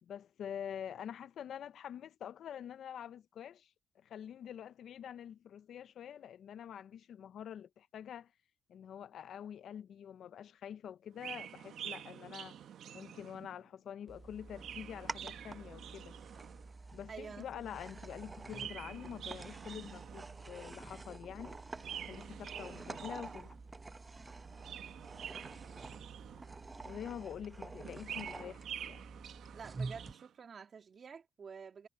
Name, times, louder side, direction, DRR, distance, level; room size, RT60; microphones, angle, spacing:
voice 1, 0.0-8.3 8.7-12.5 12.9-16.1 16.9-21.6 22.0-23.5 26.8-29.0, left 9 dB, 65° left, 0.7 m, -46 dB
Chirp tweet, 11.1-13.6 14.3-16.7 18.3-20.5 21.7-23.6 24.4-26.7 27.8-30.3, right 9 dB, 70° right, 1.4 m, -48 dB
sound 1, 14.1-30.1, right 3 dB, 25° right, 0.8 m, -48 dB
voice 2, 17.1-17.8 29.5-31.9, right 6 dB, 45° right, 2.6 m, -49 dB
sound 2, 17.6-28.3, right 13 dB, 85° right, 5.0 m, -62 dB
cardioid pair, 90°, 0 cm